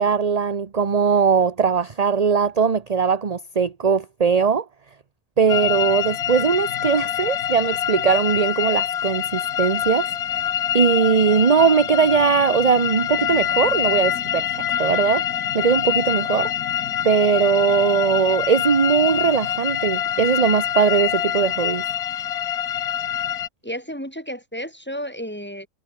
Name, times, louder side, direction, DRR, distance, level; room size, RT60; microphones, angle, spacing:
voice 1, 0.0-4.6 5.4-10.1 10.7-15.2 15.5-16.5 17.0-21.8, right 6 dB, 30° right, 0.9 m, -20 dB
sound 1, 5.5-23.5, left 10 dB, 90° left, 1.5 m, -25 dB
voice 2, 23.6-25.7, equal, 5° left, 7.8 m, -32 dB
omnidirectional pair, 1.6 m